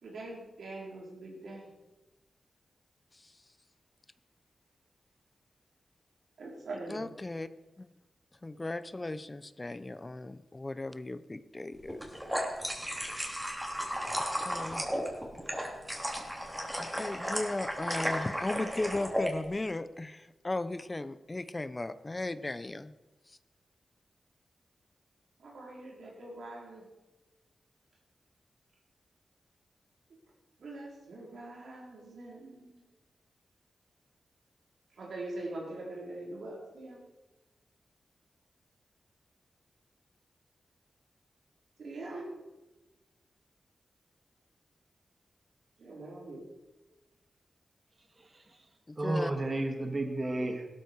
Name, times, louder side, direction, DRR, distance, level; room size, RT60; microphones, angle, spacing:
voice 1, 0.0-1.7 6.4-7.0 25.4-26.8 30.6-32.8 34.9-37.0 41.8-42.3 45.8-46.4, right 2 dB, 85° right, -2 dB, 4.6 m, -43 dB
voice 2, 6.9-7.5 7.8-7.9 8.4-12.0 14.1-14.8 16.2-16.3 16.8-22.9 23.3-23.4 48.9-49.3, left 2 dB, 30° left, 14 dB, 0.7 m, -37 dB
sound 1, 11.9-19.3, equal, 10° right, 3.3 m, -34 dB
voice 3, 48.2-48.6 49.0-50.7, right 2 dB, 40° right, 4 dB, 2.2 m, -32 dB
16.0 x 13.0 x 4.8 m, 1.1 s
cardioid pair, 65°, 0 cm